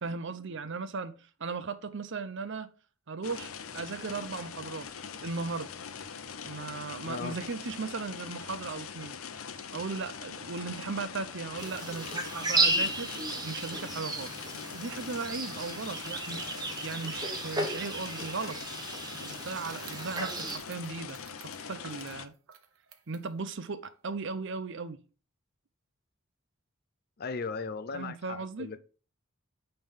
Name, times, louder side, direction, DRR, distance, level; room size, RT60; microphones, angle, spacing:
voice 1, 0.0-2.7 3.1-4.9 5.2-5.7 6.4-9.2 9.7-13.1 13.4-14.3 14.7-16.5 16.8-18.6 19.2-22.3 23.1-25.0 27.9-28.7, right 4 dB, 60° right, 0.7 m, -37 dB
sound 1, 3.2-22.3, left 6 dB, 85° left, 0.7 m, -42 dB
voice 2, 7.0-7.4 27.2-28.8, left 4 dB, 45° left, 0.6 m, -37 dB
sound 2, 11.6-20.6, right 2 dB, 20° right, 1.2 m, -34 dB
sound 3, 19.6-23.3 23.8-23.9 24.2-24.5, right 6 dB, 80° right, 1.0 m, -48 dB
8.9 x 3.4 x 5.7 m
head